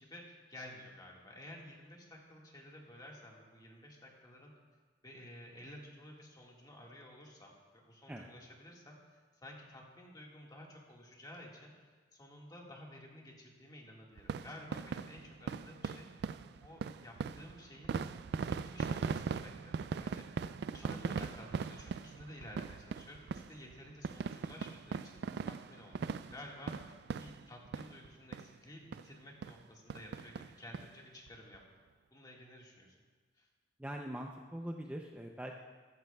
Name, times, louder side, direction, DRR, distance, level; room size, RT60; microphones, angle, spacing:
voice 1, 0.0-4.5 5.0-11.7 12.1-16.1 16.6-18.0 18.5-20.5 20.7-31.6 32.1-33.0 33.4-33.5, left 1 dB, 20° left, -1 dB, 1.7 m, -53 dB
sound 1, 14.2-28.1 28.3-28.5 28.9-29.0 29.4-29.6 29.9-30.9 31.3-31.4 31.5-31.6, right 5 dB, 65° right, 0.3 m, -40 dB
voice 2, 33.8-35.6, equal, 10° right, 1 dB, 0.5 m, -43 dB
14.5 x 13.5 x 2.3 m, 1.4 s
head